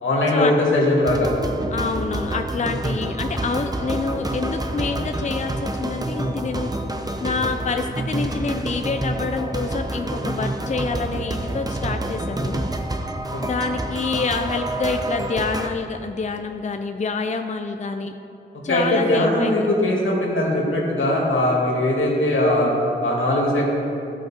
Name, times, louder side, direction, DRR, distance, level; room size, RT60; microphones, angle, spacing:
voice 1, 0.0-1.3 13.3-13.7 18.7-22.7 23.0-23.7, left 1 dB, 90° left, -3 dB, 2.3 m, -20 dB
sound 1, 1.1-15.7, right 1 dB, 20° right, 0.7 m, -28 dB
voice 2, 1.7-6.7 7.2-12.6 13.4-18.1 18.6-19.7, left 4 dB, 35° left, 6 dB, 0.5 m, -27 dB
14.5 x 6.0 x 4.4 m, 2.8 s
wide cardioid pair, 80°, 20 cm